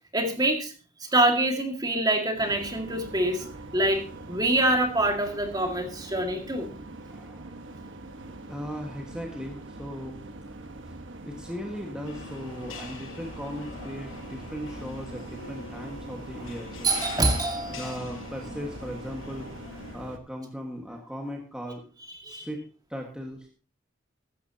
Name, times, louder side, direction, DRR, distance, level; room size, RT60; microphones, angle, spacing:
voice 1, 0.1-0.7 1.0-6.7 16.8-18.0 22.2-22.5, right 1 dB, 20° right, 4 dB, 2.0 m, -25 dB
sound 1, 2.4-20.2, right 2 dB, 65° right, 1.4 m, -43 dB
voice 2, 7.1-7.6 8.5-10.3 10.8-17.0 17.7-21.8 22.3-22.6 22.9-23.5, equal, 5° right, 1 dB, 1.6 m, -38 dB
sound 2, 12.0-19.9, left 3 dB, 85° left, 7.4 m, -43 dB
15.0 x 13.5 x 2.9 m, 0.36 s
head